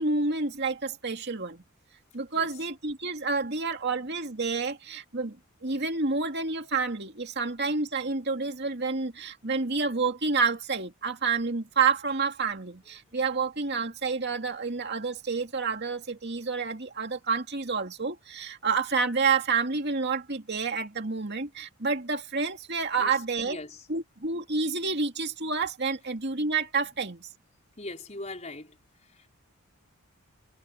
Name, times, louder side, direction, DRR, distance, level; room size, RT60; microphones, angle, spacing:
voice 1, 0.0-1.6 2.1-5.4 5.6-23.6 23.9-27.3, right 4 dB, 50° right, 2.4 m, -29 dB
voice 2, 23.4-23.9 27.8-28.8, left 2 dB, 30° left, 5.0 m, -40 dB
head